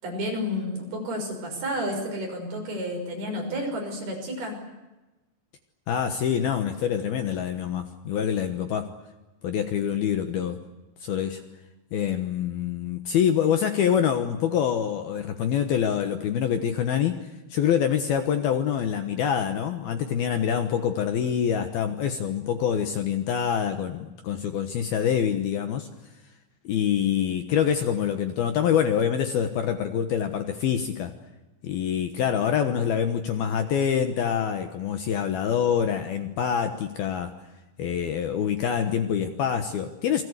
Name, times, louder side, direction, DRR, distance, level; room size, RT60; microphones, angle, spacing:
voice 1, 0.0-4.6, equal, 55° right, 2 dB, 7.7 m, -31 dB
voice 2, 5.9-8.9 9.4-10.6 11.0-11.4 11.9-17.2 17.5-25.9 26.6-31.1 31.6-37.3 37.8-40.2, left 8 dB, 65° left, 7 dB, 2.7 m, -25 dB
28.5 x 22.5 x 8.2 m, 1.1 s
omnidirectional pair, 5.6 m